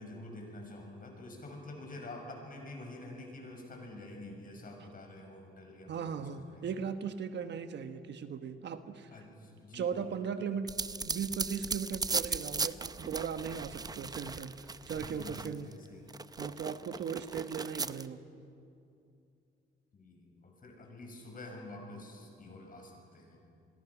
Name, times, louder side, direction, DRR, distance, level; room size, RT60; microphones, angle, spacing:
voice 1, 0.0-6.7 9.1-10.2 14.9-16.0 19.9-23.4, left 2 dB, 45° left, 2 dB, 6.3 m, -47 dB
voice 2, 5.9-9.1 9.7-10.7 11.1-15.7 16.4-18.2, right 7 dB, 60° right, 9 dB, 1.3 m, -38 dB
sound 1, 10.7-15.7 16.1-18.1, right 4 dB, 20° right, 0.6 m, -37 dB
28.0 x 22.0 x 6.1 m, 2.6 s
cardioid pair, 90°, 20 cm